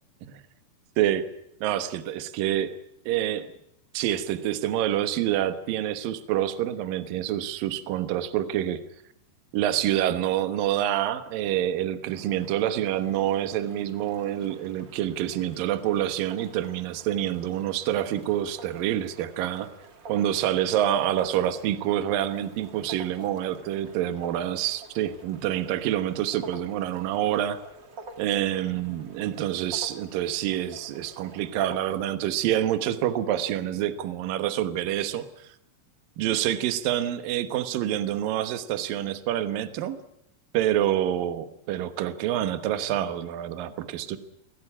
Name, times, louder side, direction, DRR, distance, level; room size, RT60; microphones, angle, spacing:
voice 1, 1.0-1.3 1.6-2.7 3.1-3.5 3.9-8.8 9.5-19.7 20.1-27.6 28.2-35.5 36.2-40.0 40.5-44.2, right 11 dB, 65° right, 11 dB, 2.7 m, -27 dB
sound 1, 12.1-32.0, right 3 dB, 35° right, 2.0 m, -48 dB
24.0 x 17.0 x 10.0 m, 0.76 s
omnidirectional pair, 4.8 m